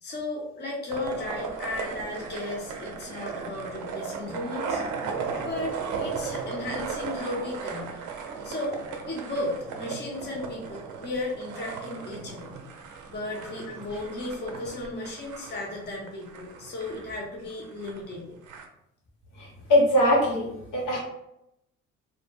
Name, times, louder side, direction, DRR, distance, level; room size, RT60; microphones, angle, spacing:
voice 1, 0.0-4.8 5.4-7.9 8.4-8.8 9.0-12.5 13.1-18.3, left 2 dB, 35° left, -2 dB, 0.7 m, -35 dB
sound 1, 0.9-18.6, right 5 dB, 80° right, 0.5 m, -36 dB
voice 2, 19.4-20.5 20.7-21.0, left 1 dB, 80° left, -3 dB, 1.0 m, -21 dB
2.2 x 2.1 x 3.1 m, 0.81 s
cardioid pair, 90°, 30 cm